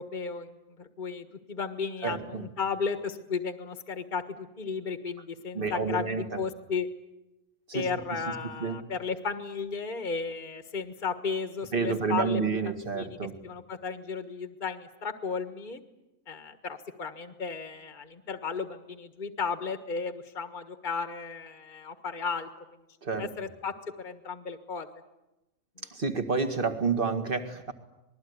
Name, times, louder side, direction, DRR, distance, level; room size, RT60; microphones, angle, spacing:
voice 1, 0.0-6.9 7.7-12.4 12.9-13.2 13.4-15.8 16.3-22.5 23.2-24.9, left 5 dB, 35° left, 8 dB, 1.6 m, -34 dB
voice 2, 2.0-2.4 5.5-6.4 7.7-7.9 8.6-8.8 11.7-13.4 23.0-23.3 25.9-27.7, right 4 dB, 40° right, 7 dB, 2.2 m, -29 dB
27.0 x 21.0 x 9.6 m, 0.98 s
omnidirectional pair, 1.4 m